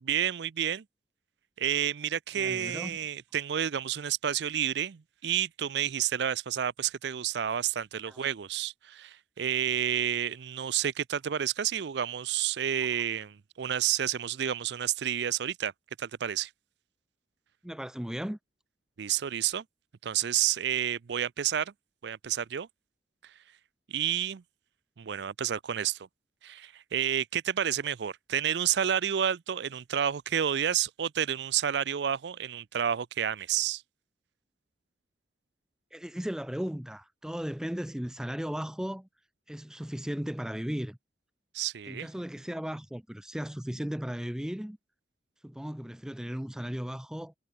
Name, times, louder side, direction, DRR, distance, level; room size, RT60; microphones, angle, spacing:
voice 1, 0.0-0.8 1.6-15.7 16.0-16.5 19.0-19.6 20.0-21.7 22.0-22.7 23.9-24.4 25.0-26.1 26.4-33.8 41.5-42.1, right 9 dB, 65° right, 0.4 m, -30 dB
voice 2, 2.4-3.0 8.1-8.2 17.6-18.4 35.9-39.1 39.5-41.0 41.9-44.8 45.4-47.3, equal, 5° right, 0.3 m, -36 dB
head